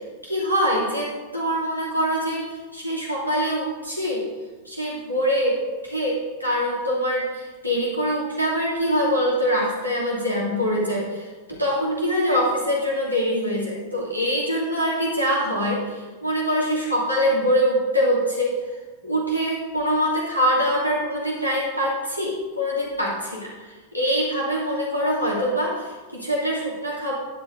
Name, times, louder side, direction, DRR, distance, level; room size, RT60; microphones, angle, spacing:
voice 1, 0.2-4.2 4.6-18.5 19.0-27.1, equal, 90° right, -5 dB, 2.9 m, -24 dB
11.0 x 7.8 x 4.0 m, 1.3 s
figure-of-eight pair, 90°, 0 cm